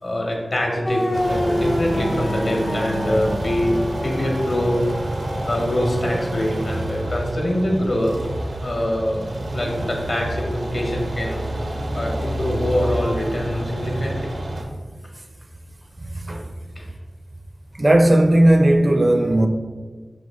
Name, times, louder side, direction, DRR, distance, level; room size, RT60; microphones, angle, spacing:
voice 1, 0.0-3.8 4.0-5.2 5.4-8.1 8.6-9.2 9.5-11.4 11.9-14.3 16.8-16.9, left 1 dB, 60° left, 1.0 m, -24 dB
sound 1, 0.8-6.5, left 1 dB, 30° left, 0.3 m, -29 dB
sound 2, 1.1-14.6, right 1 dB, 75° right, 0.6 m, -28 dB
voice 2, 16.1-16.5 17.8-19.5, right 1 dB, 35° right, 0.4 m, -16 dB
6.2 x 2.5 x 3.5 m
wide cardioid pair, 70°, 0 cm